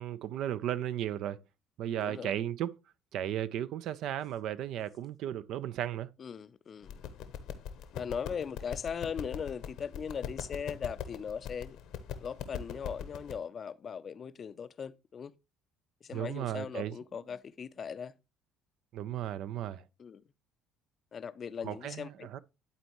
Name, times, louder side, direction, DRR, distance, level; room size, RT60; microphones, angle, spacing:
voice 1, 0.0-1.4 1.8-2.7 3.1-6.1 16.1-16.9 18.9-19.8 21.6-22.4, right 11 dB, 65° right, 0.4 m, -35 dB
voice 2, 2.0-2.3 6.2-7.0 7.9-11.8 12.2-15.3 16.0-18.1 20.0-20.2 21.1-22.4, left 7 dB, 45° left, 0.5 m, -39 dB
sound 1, 6.8-13.3, left 8 dB, 70° left, 0.9 m, -42 dB
11.5 x 4.2 x 3.0 m
hypercardioid pair, 60°, 0 cm